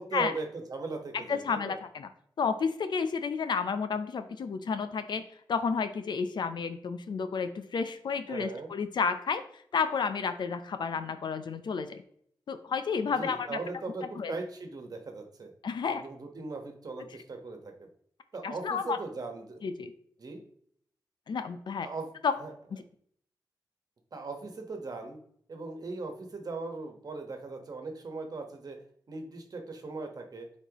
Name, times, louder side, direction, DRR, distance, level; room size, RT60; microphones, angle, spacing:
voice 1, 0.0-1.8 8.3-8.7 13.2-15.5 15.9-17.9 18.3-19.6 20.2-20.4 21.8-22.1 22.4-22.5 24.1-25.2 25.5-28.8 29.1-30.5, right 3 dB, 55° right, 4 dB, 1.4 m, -39 dB
voice 2, 1.1-2.1 2.4-9.4 9.7-12.0 12.5-13.6 14.2-14.3 15.6-16.0 18.4-19.0 19.6-19.9 21.3-21.9 22.2-22.3 22.7-22.8, left 5 dB, 75° left, 10 dB, 0.6 m, -31 dB
9.0 x 4.3 x 3.0 m, 0.64 s
cardioid pair, 75°, 8 cm